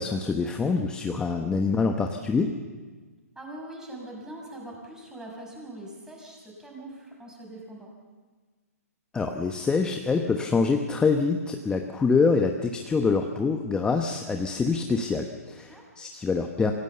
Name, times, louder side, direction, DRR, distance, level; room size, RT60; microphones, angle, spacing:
voice 1, 0.0-2.6 9.1-16.7, left 4 dB, 10° left, 4 dB, 1.1 m, -25 dB
voice 2, 3.3-7.9 15.7-15.8, right 1 dB, 5° right, -1 dB, 6.1 m, -42 dB
26.0 x 17.0 x 6.9 m, 1.4 s
hypercardioid pair, 135°, 9 cm